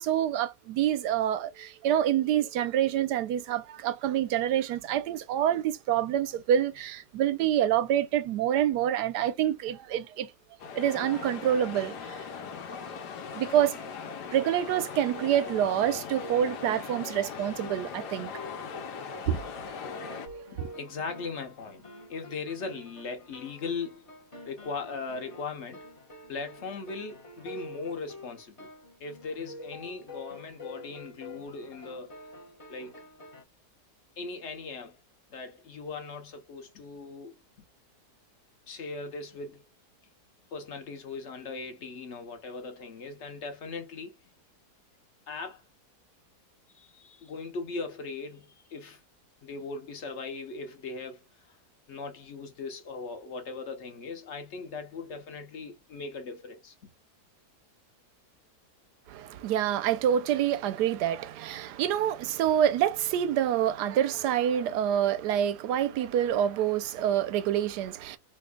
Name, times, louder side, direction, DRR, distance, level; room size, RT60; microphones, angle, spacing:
voice 1, 0.0-10.3 10.7-12.3 13.3-13.8 14.3-18.3 19.3-19.4 20.6-20.7 59.1-68.2, right 10 dB, 90° right, 1.2 m, -27 dB
sound 1, 10.6-20.3, left 6 dB, 80° left, 1.3 m, -40 dB
sound 2, 14.2-33.4, left 1 dB, 25° left, 0.9 m, -47 dB
voice 2, 20.5-21.8 22.1-24.1 24.5-25.8 26.3-28.7 29.0-32.1 32.7-33.0 34.2-35.0 35.3-37.4 38.7-39.6 40.5-44.2 45.3-45.6 46.7-49.0 49.4-51.6 51.9-56.7, left 4 dB, 50° left, 1.1 m, -39 dB
4.4 x 2.6 x 2.2 m
omnidirectional pair, 1.7 m